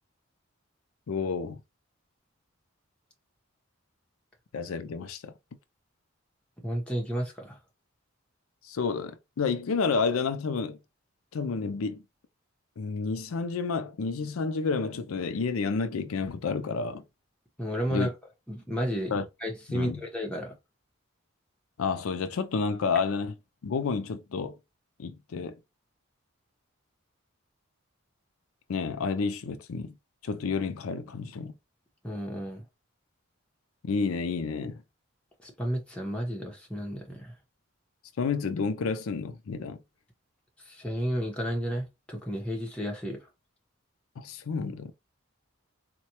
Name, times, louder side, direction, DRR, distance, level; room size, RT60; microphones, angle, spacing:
voice 1, 1.1-1.6 4.5-5.3 8.6-10.8 11.3-12.0 12.8-17.0 17.9-18.1 19.1-19.3 19.7-20.0 21.8-23.3 23.6-24.6 25.0-25.6 28.7-30.0 30.2-31.5 33.8-34.8 38.2-39.8 44.2-44.9, left 5 dB, 90° left, 0.5 m, -30 dB
voice 2, 6.6-7.6 17.6-18.1 18.5-19.1 19.4-20.5 32.0-32.6 35.4-37.3 40.6-43.2, equal, 5° left, 0.9 m, -32 dB
4.1 x 2.2 x 2.9 m
head